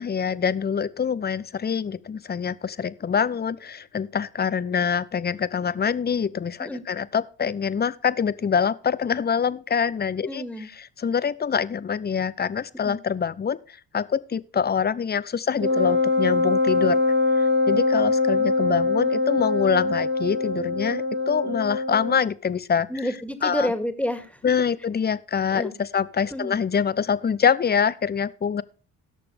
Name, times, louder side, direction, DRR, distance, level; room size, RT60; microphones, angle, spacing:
voice 1, 0.0-10.4 10.8-17.0 17.4-22.9 23.4-23.7 24.4-28.6, left 7 dB, 25° left, 0.8 m, -25 dB
voice 2, 10.3-10.7 12.8-13.0 22.9-24.4 25.5-25.7 26.3-26.6, left 1 dB, 5° left, 2.2 m, -29 dB
Wind instrument woodwind instrument, 15.6-22.2, left 3 dB, 30° right, 1.4 m, -23 dB
17.0 x 6.7 x 3.5 m
supercardioid pair, 60°, 39 cm